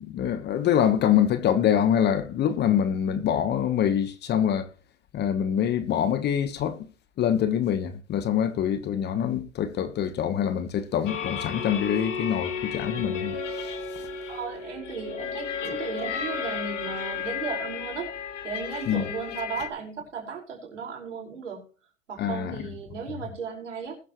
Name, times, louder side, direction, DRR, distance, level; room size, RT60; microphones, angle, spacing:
voice 1, 0.0-4.7 5.1-6.9 7.2-14.0 18.9-19.0 22.2-22.6, left 9 dB, 30° left, 1.3 m, -25 dB
sound 1, 11.0-19.7, left 6 dB, 75° left, 3.1 m, -33 dB
voice 2, 14.3-18.1 18.4-21.6 22.1-24.0, right 5 dB, 85° right, 5.4 m, -35 dB
20.5 x 7.7 x 3.1 m
hypercardioid pair, 110°, 36 cm